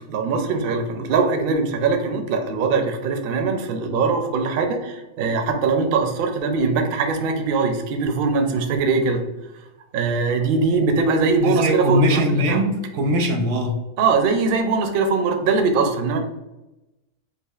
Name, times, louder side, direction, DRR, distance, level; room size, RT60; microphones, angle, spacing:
voice 1, 0.1-9.2 9.9-12.6 14.0-16.2, right 4 dB, 60° right, 5 dB, 0.6 m, -21 dB
voice 2, 11.4-13.8, equal, 85° right, 3 dB, 1.0 m, -21 dB
4.9 x 2.5 x 2.4 m, 0.99 s
omnidirectional pair, 1.2 m